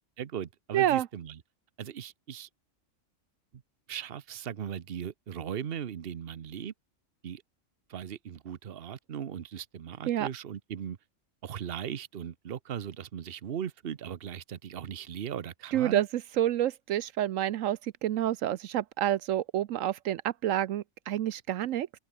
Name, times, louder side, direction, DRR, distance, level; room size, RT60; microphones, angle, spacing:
voice 1, 0.2-1.4 1.8-2.5 3.9-6.7 7.2-7.4 7.9-11.0 11.4-16.0, right 8 dB, 50° right, 1.0 m, -38 dB
voice 2, 0.7-1.1 10.1-10.3 15.7-16.1 16.4-21.9, right 12 dB, 80° right, 1.0 m, -28 dB
open air
omnidirectional pair, 1.3 m